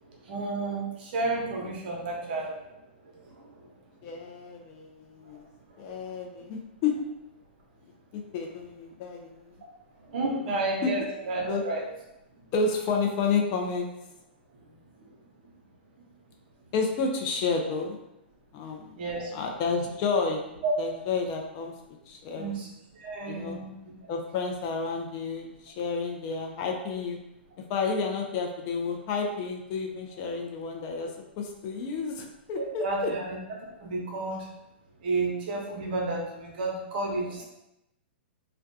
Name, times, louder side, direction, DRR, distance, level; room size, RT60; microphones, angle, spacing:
voice 1, 0.1-2.6 3.1-3.7 6.1-6.2 10.1-11.9 19.0-19.3 20.6-20.7 22.4-22.7 22.9-23.7 32.6-34.5 35.0-37.4, right 2 dB, 60° right, -2 dB, 0.8 m, -31 dB
voice 2, 4.0-5.4 5.8-7.0 8.1-9.5 10.8-11.1 11.5-11.6 12.5-13.9 16.7-18.0 18.5-18.9 19.3-20.4 20.8-22.6 23.3-23.6 24.1-27.2 27.7-33.1 37.1-37.4, left 4 dB, 40° left, 2 dB, 0.4 m, -31 dB
2.4 x 2.2 x 2.6 m, 0.88 s
hypercardioid pair, 135°, 6 cm